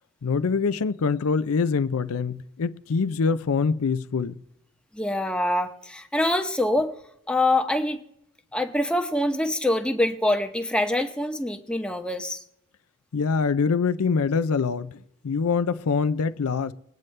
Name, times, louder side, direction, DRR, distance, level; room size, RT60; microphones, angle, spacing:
voice 1, 0.2-4.4 13.1-16.7, left 5 dB, 75° left, 0.5 m, -24 dB
voice 2, 4.9-6.9 7.3-8.0 8.5-12.4, left 1 dB, 5° left, 0.9 m, -25 dB
21.5 x 9.1 x 3.3 m
head